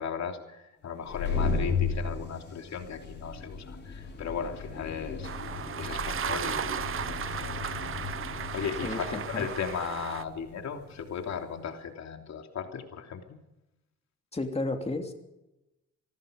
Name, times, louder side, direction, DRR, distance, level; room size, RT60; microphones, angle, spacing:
voice 1, 0.0-13.4, left 7 dB, 65° left, 4 dB, 3.2 m, -37 dB
sound 1, 0.9-11.4, left 4 dB, 35° left, 7.1 m, -35 dB
sound 2, 5.2-10.2, right 8 dB, 45° right, 1.0 m, -35 dB
voice 2, 8.8-9.5 14.3-15.1, left 2 dB, 20° left, 4 dB, 3.0 m, -32 dB
25.5 x 19.5 x 5.3 m, 0.94 s
cardioid pair, 90°, 30 cm